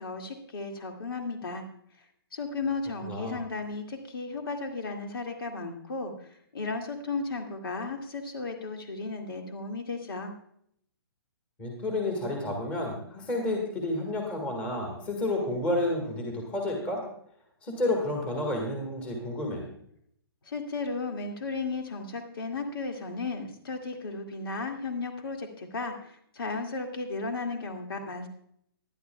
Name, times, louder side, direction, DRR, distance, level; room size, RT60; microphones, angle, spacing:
voice 1, 0.0-1.6 2.3-6.1 6.5-10.3 20.5-28.3, left 3 dB, 60° left, 3 dB, 2.2 m, -34 dB
voice 2, 3.1-3.4 11.6-17.0 17.6-19.6, left 1 dB, 10° left, 2 dB, 1.7 m, -30 dB
19.0 x 11.0 x 2.3 m, 0.67 s
hypercardioid pair, 175°, 13 cm